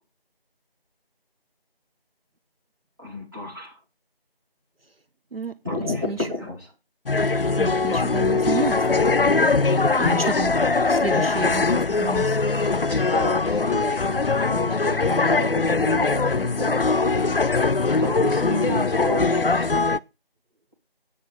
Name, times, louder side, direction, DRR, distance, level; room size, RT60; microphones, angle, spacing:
voice 1, 3.0-3.8 5.6-6.7 10.0-10.3 12.9-17.7 18.0-19.7, left 1 dB, 20° right, -4 dB, 2.6 m, -30 dB
sound 1, 7.1-20.0, left 3 dB, 65° left, 0.6 m, -21 dB
voice 2, 7.6-9.5 10.0-10.5 10.9-12.4, right 2 dB, 70° right, 10 dB, 1.0 m, -30 dB
9.1 x 6.7 x 6.6 m, 0.27 s
figure-of-eight pair, 175°, 30 cm